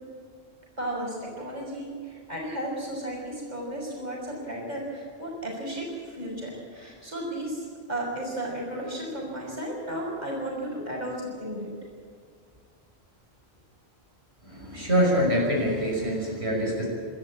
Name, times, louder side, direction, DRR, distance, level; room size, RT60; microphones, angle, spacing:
voice 1, 0.8-11.7, right 1 dB, 40° right, -2 dB, 6.5 m, -34 dB
voice 2, 14.4-16.9, equal, 75° right, -3 dB, 6.2 m, -25 dB
26.0 x 13.5 x 8.8 m, 2.1 s
omnidirectional pair, 1.1 m